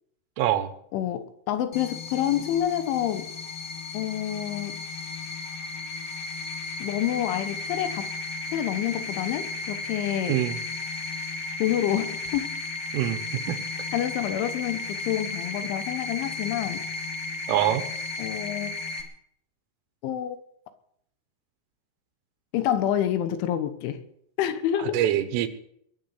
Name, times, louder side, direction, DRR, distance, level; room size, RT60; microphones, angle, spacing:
voice 1, 0.4-0.7 10.3-10.6 12.9-13.6 17.5-17.9 24.8-25.5, right 12 dB, 90° right, 3.9 m, -25 dB
voice 2, 0.9-3.3 3.9-4.8 6.8-8.1 8.5-10.4 11.6-12.5 13.9-16.8 18.2-18.7 20.0-20.4 22.5-24.0 24.4-25.0, left 11 dB, 75° left, 3.5 m, -28 dB
sound 1, 1.7-19.0, left 3 dB, 40° left, 1.6 m, -34 dB
22.0 x 7.7 x 8.3 m
omnidirectional pair, 5.6 m